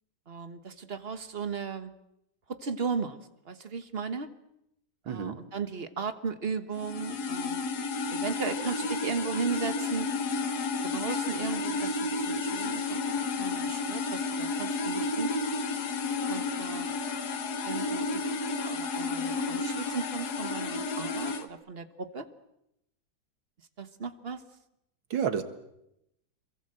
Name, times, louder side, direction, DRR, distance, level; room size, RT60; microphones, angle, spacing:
voice 1, 0.3-1.9 2.5-3.2 3.4-4.3 5.1-7.7 8.1-10.1 10.8-13.0 13.3-15.3 16.3-16.9 17.6-18.4 18.6-22.3 23.8-24.4, right 5 dB, 35° right, 10 dB, 1.4 m, -36 dB
voice 2, 5.1-5.4 25.1-25.4, right 7 dB, 80° right, 9 dB, 2.5 m, -29 dB
sound 1, 6.8-21.4, left 3 dB, 55° left, 1.8 m, -31 dB
27.5 x 22.5 x 7.8 m, 0.83 s
omnidirectional pair, 2.1 m